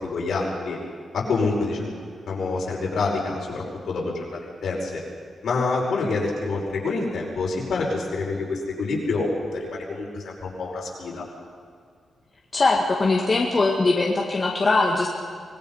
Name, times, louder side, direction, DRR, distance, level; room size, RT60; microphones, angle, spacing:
voice 1, 0.0-0.8 1.1-2.0 2.3-5.0 5.4-11.2, left 3 dB, 65° left, -2 dB, 5.4 m, -27 dB
voice 2, 12.5-15.1, left 3 dB, 30° left, -1 dB, 1.9 m, -21 dB
25.0 x 19.5 x 5.7 m, 2.1 s
wide cardioid pair, 145°, 0 cm